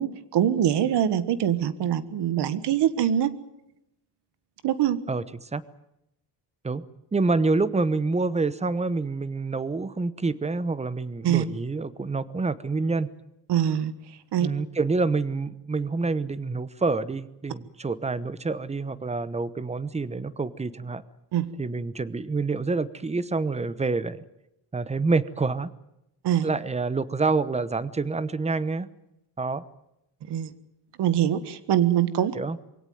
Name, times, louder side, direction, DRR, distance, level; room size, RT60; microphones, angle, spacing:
voice 1, 0.0-3.3 4.6-5.0 11.2-11.4 13.5-13.9 14.3-14.5 21.3-21.5 26.2-26.5 30.3-30.5 31.0-32.3, right 10 dB, 70° right, 14 dB, 1.6 m, -23 dB
voice 2, 7.1-13.1 14.4-21.0 21.6-24.2 24.7-25.7 26.4-28.9 29.4-29.6 32.3-32.6, right 3 dB, 15° right, 17 dB, 0.9 m, -27 dB
23.0 x 17.0 x 9.3 m, 0.86 s
cardioid pair, 125°, 42 cm